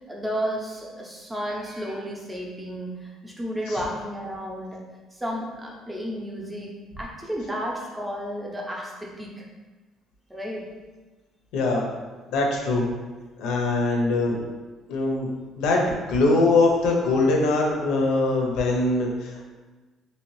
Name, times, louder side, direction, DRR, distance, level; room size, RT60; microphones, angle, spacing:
voice 1, 0.1-4.8 5.1-6.7 7.0-9.5 10.3-10.6 12.7-12.8, equal, 10° right, -2 dB, 0.5 m, -32 dB
voice 2, 11.5-11.8 12.3-12.9 13.4-14.4 14.9-15.3 15.6-19.5, left 2 dB, 90° left, 0 dB, 0.6 m, -22 dB
2.9 x 2.8 x 3.1 m, 1.3 s
cardioid pair, 150°, 0 cm